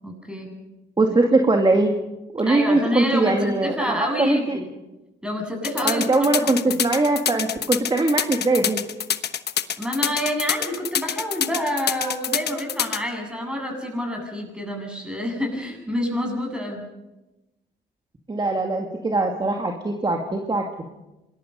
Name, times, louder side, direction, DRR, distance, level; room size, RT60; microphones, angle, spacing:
voice 1, 0.0-0.5 1.1-1.2 2.4-4.7 5.2-6.8 9.8-16.8, equal, 5° right, 2 dB, 7.8 m, -28 dB
voice 2, 1.0-1.9 2.3-4.6 5.8-8.8 18.3-20.6, right 2 dB, 25° right, 3 dB, 2.3 m, -21 dB
sound 1, 5.6-13.0, left 9 dB, 55° left, 1.2 m, -25 dB
26.0 x 21.0 x 5.4 m, 1.0 s
cardioid pair, 90°, 20 cm